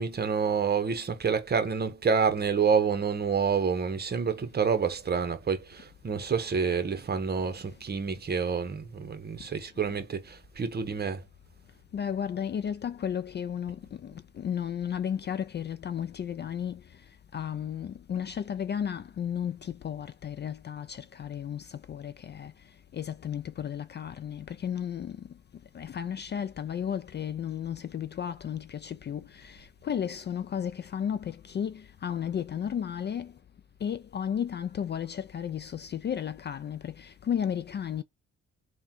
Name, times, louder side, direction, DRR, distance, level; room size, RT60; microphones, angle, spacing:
voice 1, 0.0-11.2, right 6 dB, 35° right, 0.9 m, -28 dB
voice 2, 11.9-16.8 17.3-22.5 22.9-25.2 25.7-29.6 29.8-33.3 33.8-38.0, left 8 dB, 35° left, 0.4 m, -33 dB
3.6 x 2.3 x 4.3 m
cardioid pair, 90°, 30 cm